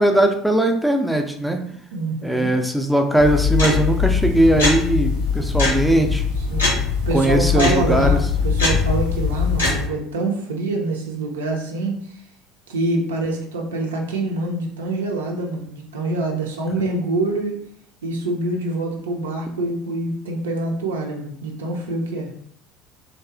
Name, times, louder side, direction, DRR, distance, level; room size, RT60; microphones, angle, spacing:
voice 1, 0.0-1.6 2.2-6.2 7.1-8.2, right 1 dB, ahead, 4 dB, 0.4 m, -19 dB
voice 2, 1.9-2.5 6.5-11.9 12.7-17.6 18.0-22.3, right 2 dB, 75° right, 1 dB, 0.5 m, -25 dB
sound 1, 3.2-9.9, left 5 dB, 80° left, 0.8 m, -21 dB
2.9 x 2.3 x 2.4 m, 0.63 s
figure-of-eight pair, 65°, 0 cm